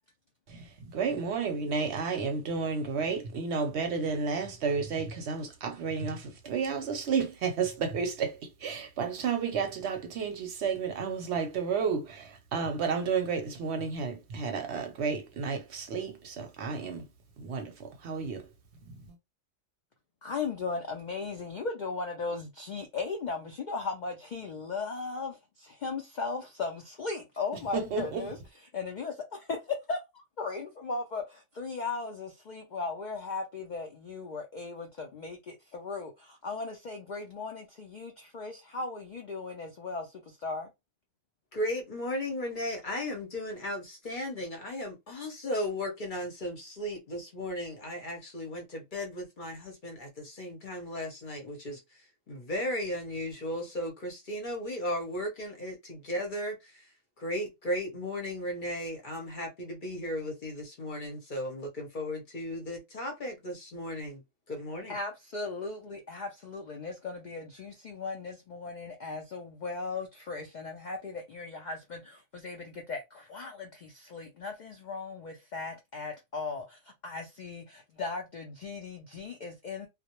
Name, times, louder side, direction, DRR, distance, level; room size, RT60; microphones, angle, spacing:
voice 1, 0.5-17.0 17.4-18.5 18.8-19.0 27.7-28.3, right 5 dB, 65° right, 0.8 m, -32 dB
voice 2, 20.2-28.4 28.7-40.7 64.9-79.9, left 4 dB, 80° left, 0.4 m, -37 dB
voice 3, 41.5-56.9 57.2-64.2 64.5-65.0, left 1 dB, 45° left, 0.7 m, -36 dB
2.2 x 2.0 x 2.9 m
omnidirectional pair, 1.3 m